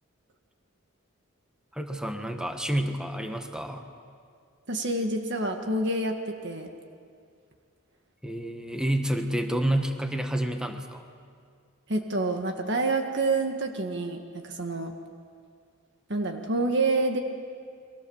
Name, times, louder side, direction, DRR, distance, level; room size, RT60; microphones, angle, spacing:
voice 1, 1.7-3.8 8.2-11.1, right 1 dB, 5° right, 5 dB, 1.4 m, -29 dB
voice 2, 4.7-6.7 11.9-14.9 16.1-17.2, right 2 dB, 55° right, 4 dB, 1.8 m, -27 dB
29.5 x 23.0 x 7.2 m, 2.2 s
head